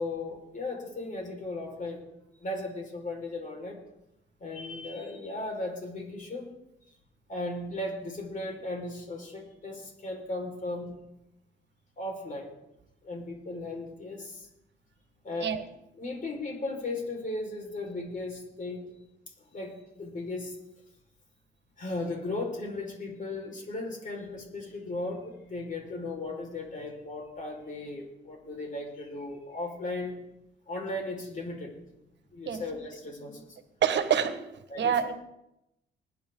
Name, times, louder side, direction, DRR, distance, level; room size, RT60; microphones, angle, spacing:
voice 1, 0.0-2.0 2.4-3.8 4.4-6.5 7.3-10.9 12.0-12.5 13.0-14.5 15.2-15.5 16.0-18.9 19.5-20.6 21.8-30.2 30.7-31.7 32.3-33.6 34.7-35.0, left 2 dB, 40° left, 1 dB, 5.2 m, -36 dB
voice 2, 33.8-34.5 34.8-35.1, right 8 dB, 65° right, 9 dB, 1.6 m, -26 dB
20.5 x 10.5 x 3.9 m, 0.86 s
cardioid pair, 90°, 20 cm